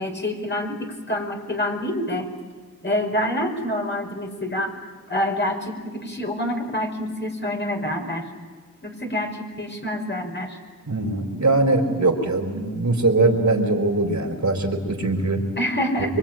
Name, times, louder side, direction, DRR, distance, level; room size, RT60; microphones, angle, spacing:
voice 1, 0.0-2.3 2.8-4.7 5.1-8.2 8.8-10.6 15.6-16.2, left 1 dB, 35° left, 2 dB, 5.3 m, -27 dB
voice 2, 10.9-15.4 16.0-16.2, right 2 dB, 60° right, 3 dB, 4.1 m, -21 dB
26.0 x 24.0 x 9.0 m, 1.4 s
cardioid pair, 50°, 32 cm